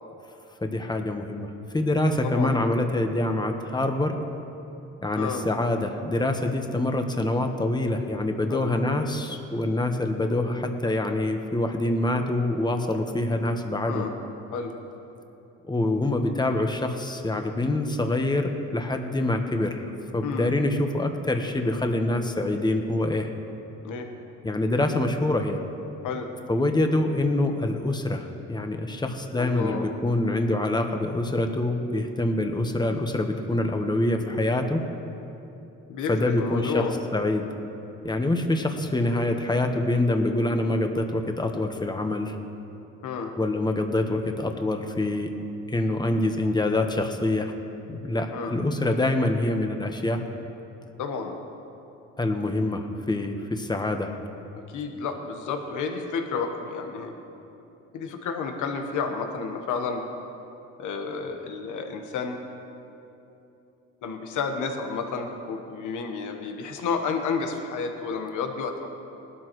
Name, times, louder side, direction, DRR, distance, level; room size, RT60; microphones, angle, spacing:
voice 1, 0.6-4.2 5.0-14.1 15.7-23.3 24.4-25.6 26.5-34.8 36.1-36.9 37.1-37.5 38.0-42.4 43.4-45.3 45.7-47.5 47.9-50.2 52.2-54.2, left 1 dB, 15° left, 5 dB, 1.1 m, -25 dB
voice 2, 2.2-2.6 5.2-5.4 8.5-8.7 13.8-14.1 14.5-14.7 20.2-20.5 23.8-24.1 26.0-26.3 29.4-29.8 35.9-36.9 43.0-43.3 48.3-48.5 51.0-51.4 54.7-57.1 57.9-60.0 60.8-62.4 64.0-68.9, left 5 dB, 90° left, 4 dB, 1.2 m, -31 dB
19.5 x 12.5 x 3.1 m, 2.9 s
cardioid pair, 90°, 30 cm